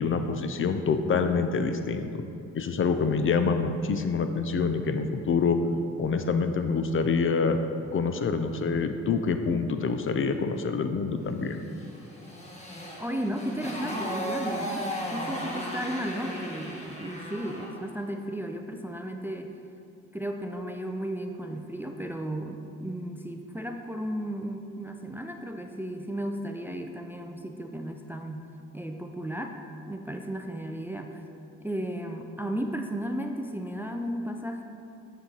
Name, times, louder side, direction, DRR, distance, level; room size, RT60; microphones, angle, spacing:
voice 1, 0.0-2.2 2.5-5.6 6.0-7.6 7.9-11.6, left 5 dB, 45° left, 8 dB, 0.5 m, -26 dB
Motorcycle, 11.7-17.8, equal, 20° left, 1.6 m, -35 dB
voice 2, 13.0-19.5 20.1-28.5 28.7-29.6 29.9-31.2 31.6-34.6, right 1 dB, 5° right, 4 dB, 0.4 m, -34 dB
8.6 x 5.6 x 4.0 m, 2.6 s
cardioid pair, 90°, 30 cm